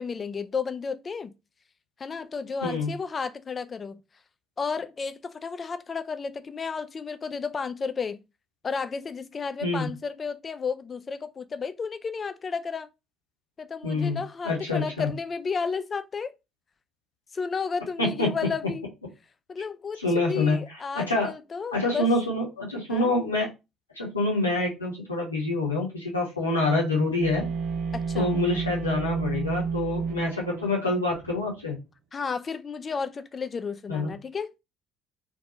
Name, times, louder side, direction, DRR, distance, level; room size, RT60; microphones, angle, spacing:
voice 1, 0.0-1.3 2.0-4.0 4.6-8.2 8.6-12.9 13.6-16.3 17.3-18.9 19.5-22.1 22.9-23.1 27.9-28.3 32.1-34.5, left 5 dB, 30° left, 0.3 m, -32 dB
voice 2, 13.8-15.1 18.0-18.3 20.0-20.6 20.9-21.3 21.7-23.5 24.0-27.5 28.1-31.8 33.9-34.1, left 2 dB, 85° left, 0.7 m, -26 dB
sound 1, 27.2-31.4, right 5 dB, 55° right, 0.4 m, -31 dB
2.6 x 2.2 x 2.8 m
figure-of-eight pair, 50°, 0 cm